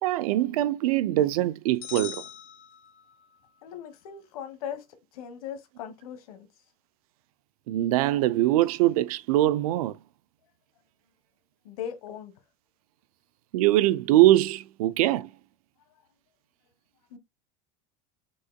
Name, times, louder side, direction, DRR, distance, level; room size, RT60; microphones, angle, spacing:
voice 1, 0.0-2.2 7.7-10.0 13.5-15.3, right 15 dB, 85° right, 0.5 m, -22 dB
sound 1, 1.8-3.4, left 11 dB, 50° left, 1.3 m, -41 dB
voice 2, 3.6-4.9 5.1-6.5 11.6-12.4 17.1-17.2, left 9 dB, 85° left, 1.2 m, -39 dB
5.3 x 3.7 x 2.2 m
supercardioid pair, 130°, 18 cm